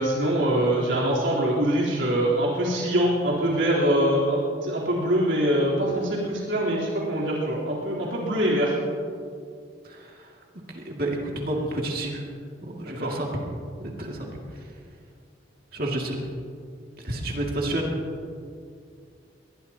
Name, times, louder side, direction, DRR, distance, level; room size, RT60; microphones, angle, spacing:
voice 1, 0.0-8.7 12.9-13.1, right 1 dB, 75° right, -6 dB, 3.7 m, -24 dB
voice 2, 9.8-10.3 10.7-12.2 12.6-13.3 13.8-14.3 15.7-16.3 17.0-17.9, right 1 dB, 50° right, -1 dB, 2.3 m, -30 dB
22.5 x 20.0 x 2.9 m, 2.3 s
head